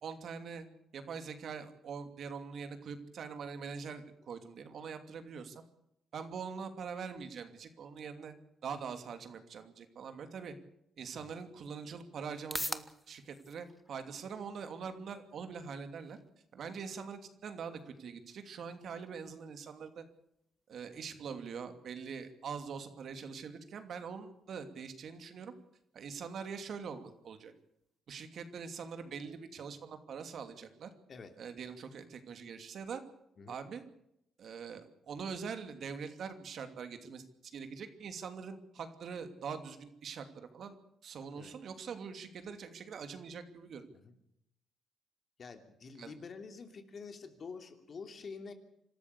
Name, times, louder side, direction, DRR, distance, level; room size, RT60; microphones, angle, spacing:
voice 1, 0.0-0.7 0.9-5.6 6.1-8.3 8.6-10.5 11.0-16.2 16.5-20.0 20.7-25.5 25.9-27.5 28.1-30.9 31.4-33.0 33.5-33.8 34.4-37.2 37.5-40.8 41.0-43.9 46.0-46.2, right 6 dB, 60° right, 8 dB, 2.7 m, -43 dB
sound 1, 11.9-28.0, equal, 5° left, 1.2 m, -51 dB
voice 2, 45.4-48.5, left 5 dB, 45° left, 6 dB, 3.0 m, -47 dB
26.0 x 13.5 x 8.3 m, 0.78 s
cardioid pair, 90°, 0 cm